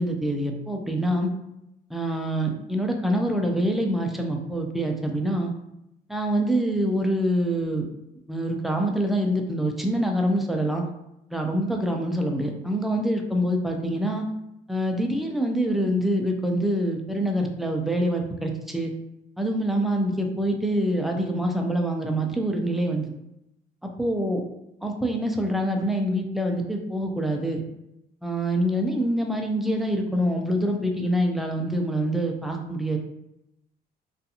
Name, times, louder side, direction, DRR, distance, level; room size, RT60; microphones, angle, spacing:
voice 1, 0.0-1.3 1.9-5.5 6.1-7.9 8.3-10.8 11.3-14.3 14.7-18.9 19.4-23.1 23.8-24.4 24.8-27.6 28.2-33.0, equal, ahead, 2 dB, 0.4 m, -25 dB
2.4 x 2.4 x 2.7 m, 0.85 s
cardioid pair, 110°, 17 cm